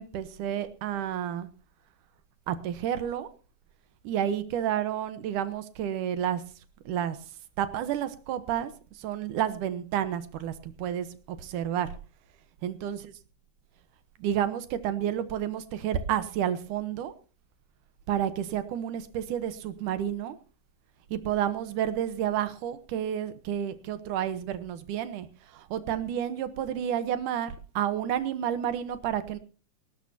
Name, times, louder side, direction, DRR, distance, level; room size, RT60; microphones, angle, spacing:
voice 1, 0.0-1.5 2.5-3.3 4.0-6.4 6.9-7.2 7.6-8.7 9.0-10.5 10.8-11.1 11.4-11.9 12.6-13.0 14.2-17.1 18.1-20.4 21.1-25.3 25.7-29.4, right 10 dB, 85° right, 12 dB, 2.6 m, -30 dB
19.0 x 18.0 x 2.8 m, 0.36 s
omnidirectional pair, 3.5 m